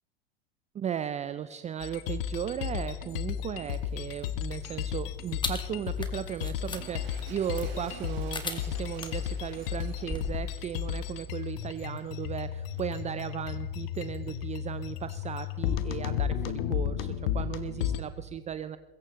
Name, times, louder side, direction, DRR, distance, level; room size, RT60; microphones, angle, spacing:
voice 1, 0.7-18.8, right 9 dB, 20° right, 13 dB, 0.5 m, -36 dB
sound 1, 1.8-18.0, left 10 dB, 65° left, 1.3 m, -34 dB
sound 2, 3.7-10.4, left 3 dB, 15° left, 2.0 m, -41 dB
Toilet flush, 6.5-12.0 12.7-12.8, right 6 dB, 60° right, 6.0 m, -52 dB
21.0 x 16.5 x 3.8 m, 1.3 s
hypercardioid pair, 95°, 31 cm